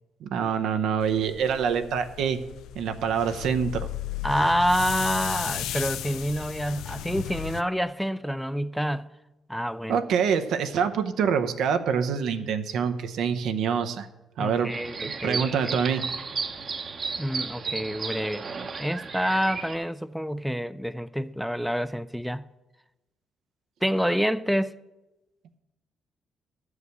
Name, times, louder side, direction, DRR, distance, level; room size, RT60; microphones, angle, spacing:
voice 1, 0.2-2.4 2.7-3.9 9.9-14.1 14.4-14.7 15.0-16.0, right 7 dB, 80° right, 0.8 m, -26 dB
sound 1, 1.0-7.6, left 13 dB, 90° left, 0.3 m, -35 dB
voice 2, 4.2-9.1 9.5-10.0 14.4-15.8 17.2-18.5 18.8-22.4 23.8-24.7, equal, ahead, 0.5 m, -27 dB
sound 2, 14.7-19.7, right 5 dB, 45° right, 0.9 m, -34 dB
12.0 x 4.9 x 8.2 m
cardioid pair, 90°, 0 cm